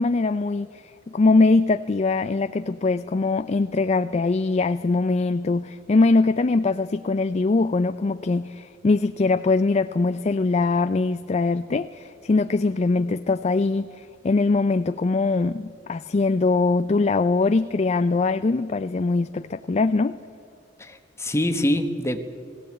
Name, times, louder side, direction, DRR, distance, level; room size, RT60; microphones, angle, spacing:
voice 1, 0.0-20.2, left 3 dB, 35° left, 0.4 m, -22 dB
voice 2, 20.8-22.3, left 1 dB, 15° left, 1.3 m, -25 dB
20.0 x 16.5 x 8.8 m
head